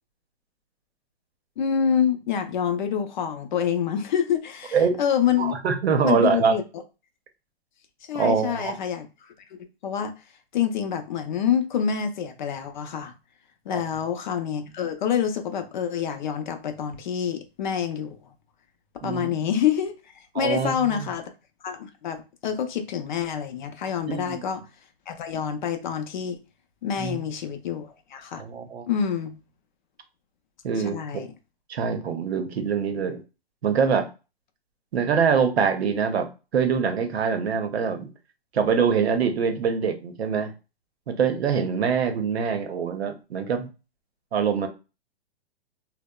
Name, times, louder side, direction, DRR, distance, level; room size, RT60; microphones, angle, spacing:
voice 1, 1.6-5.5 6.0-6.6 8.1-9.1 9.5-10.1 10.5-13.1 13.7-18.2 19.0-20.0 20.3-21.3 21.6-24.6 25.1-26.4 26.8-28.4 28.9-29.3 30.8-31.3, left 8 dB, 50° left, 0.5 m, -27 dB
voice 2, 5.4-6.5 8.1-8.8 13.7-13.8 19.0-19.3 20.4-21.1 24.0-24.4 27.0-27.2 28.4-28.9 30.6-31.0 31.7-33.2 33.6-34.1 34.9-38.1 38.5-40.5 41.1-43.7 44.3-44.7, right 6 dB, 80° right, 0.7 m, -24 dB
2.7 x 2.0 x 2.2 m
hypercardioid pair, 150°, 31 cm